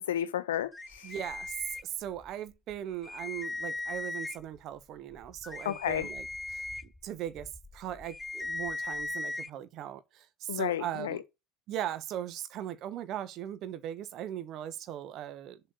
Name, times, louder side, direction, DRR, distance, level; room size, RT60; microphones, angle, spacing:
voice 1, 0.0-1.0 5.6-6.1 10.5-11.2, left 11 dB, 70° left, 1.0 m, -32 dB
sound 1, 0.7-2.3 2.7-2.8 3.0-4.6 5.1-9.5, left 2 dB, 15° left, 0.6 m, -39 dB
voice 2, 1.0-6.6 7.0-11.2 11.7-15.6, right 11 dB, 45° right, 1.3 m, -39 dB
7.5 x 4.5 x 6.5 m
figure-of-eight pair, 70°, 0 cm